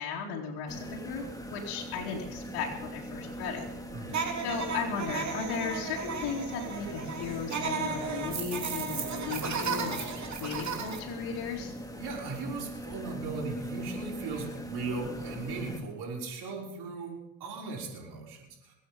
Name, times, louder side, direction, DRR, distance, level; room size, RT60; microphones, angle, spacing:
voice 1, 0.0-3.7 4.4-10.1 10.4-11.7, left 5 dB, 65° left, -3 dB, 3.0 m, -36 dB
sound 1, 0.7-15.8, equal, 10° left, 2.5 m, -41 dB
sound 2, 4.1-11.0, right 5 dB, 40° right, 3.2 m, -35 dB
voice 2, 12.0-18.7, right 3 dB, 60° right, -2 dB, 5.7 m, -38 dB
22.5 x 8.9 x 5.4 m, 0.88 s
hypercardioid pair, 70°, 44 cm